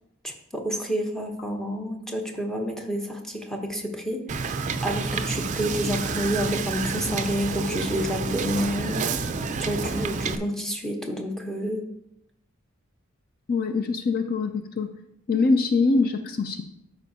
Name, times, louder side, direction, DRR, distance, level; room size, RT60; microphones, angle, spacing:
voice 1, 0.2-9.0 9.6-11.8, equal, 5° left, 2 dB, 0.9 m, -29 dB
Wind / Boat Water vehicle, 4.3-10.4, right 4 dB, 35° right, 0.4 m, -29 dB
voice 2, 13.5-14.9 15.3-16.6, left 3 dB, 45° left, 7 dB, 0.4 m, -23 dB
12.5 x 5.2 x 2.8 m, 0.82 s
head